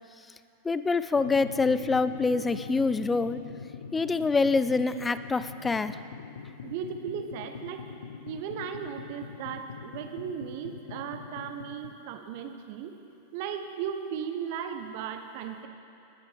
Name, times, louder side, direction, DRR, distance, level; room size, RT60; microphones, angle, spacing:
voice 1, 0.6-3.4 3.9-6.0, left 3 dB, 15° left, 13 dB, 0.4 m, -26 dB
sound 1, 1.1-11.9, left 6 dB, 65° left, 0.7 m, -42 dB
voice 2, 6.6-7.8 8.2-12.9 13.3-15.7, right 8 dB, 50° right, 7 dB, 0.7 m, -36 dB
19.5 x 8.8 x 3.5 m, 2.9 s
figure-of-eight pair, 90°, 0 cm